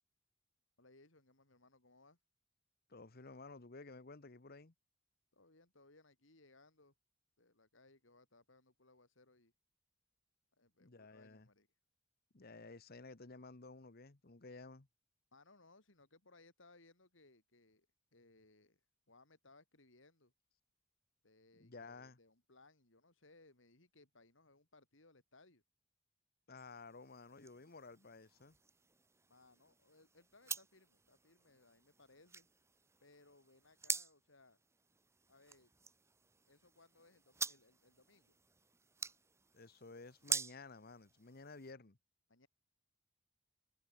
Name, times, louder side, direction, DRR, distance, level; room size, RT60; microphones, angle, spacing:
voice 1, 0.8-2.2 5.3-6.9 7.4-9.5 10.5-11.7 15.3-17.9 18.1-18.8 19.1-20.3 21.2-25.6 29.3-32.5 33.0-34.6 35.3-35.7 36.5-38.4 42.3-42.5, left 2 dB, 70° left, 3.8 m, -66 dB
voice 2, 2.9-4.7 10.8-11.5 12.3-14.9 21.6-22.2 26.5-28.5 39.5-42.0, left 3 dB, 50° left, 1.2 m, -54 dB
sound 1, 26.6-41.7, right 4 dB, 15° right, 1.4 m, -47 dB
head